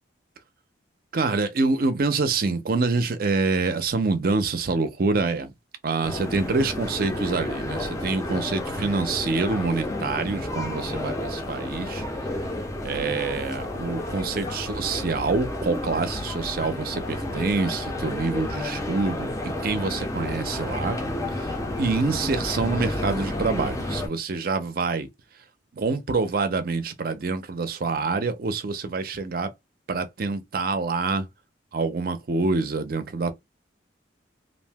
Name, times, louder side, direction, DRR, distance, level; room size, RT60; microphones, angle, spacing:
voice 1, 1.1-5.5 5.8-12.0 12.8-21.0 21.3-21.5 21.8-25.1 25.7-29.5 29.9-31.3 31.7-33.3, right 3 dB, 50° right, 0.5 m, -26 dB
sound 1, 6.0-24.1, left 1 dB, 15° left, 0.5 m, -31 dB
2.5 x 2.0 x 3.4 m
head